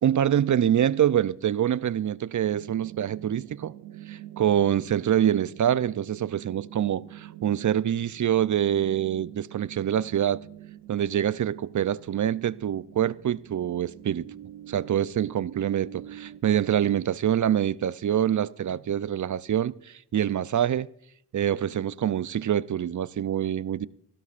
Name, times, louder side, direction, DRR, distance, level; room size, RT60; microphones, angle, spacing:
voice 1, 0.0-3.7 4.1-10.4 10.9-14.3 14.7-20.9 21.3-23.9, right 10 dB, 40° right, 0.6 m, -25 dB
sound 1, 2.5-16.4, right 13 dB, 90° right, 0.7 m, -45 dB
26.5 x 13.0 x 2.5 m
supercardioid pair, 45°, 45 cm